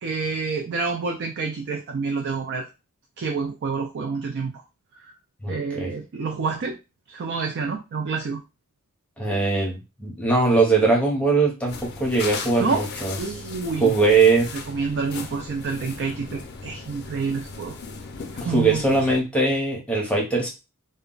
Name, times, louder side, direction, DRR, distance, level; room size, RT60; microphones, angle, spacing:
voice 1, 0.0-2.7 3.2-4.6 4.9-5.1 5.4-6.8 7.1-8.4 12.6-12.9 13.2-14.0 14.7-17.8 18.3-19.0, right 4 dB, 50° right, 4 dB, 0.4 m, -28 dB
voice 2, 5.4-5.9 9.2-13.2 13.8-14.5 18.4-20.5, right 3 dB, 5° left, -1 dB, 0.7 m, -21 dB
sound 1, 11.7-19.2, left 4 dB, 50° left, 0.5 m, -37 dB
2.2 x 2.0 x 3.7 m, 0.28 s
head